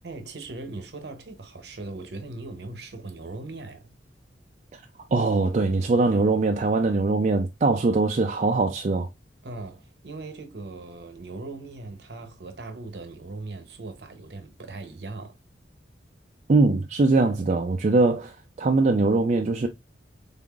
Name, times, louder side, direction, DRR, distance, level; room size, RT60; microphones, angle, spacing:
voice 1, 0.0-4.0 9.4-15.4 17.5-17.6, right 3 dB, 65° right, 0.8 m, -39 dB
voice 2, 5.1-9.1 16.5-18.3 18.6-19.7, right 3 dB, 40° right, 0.4 m, -22 dB
3.7 x 3.5 x 2.3 m
head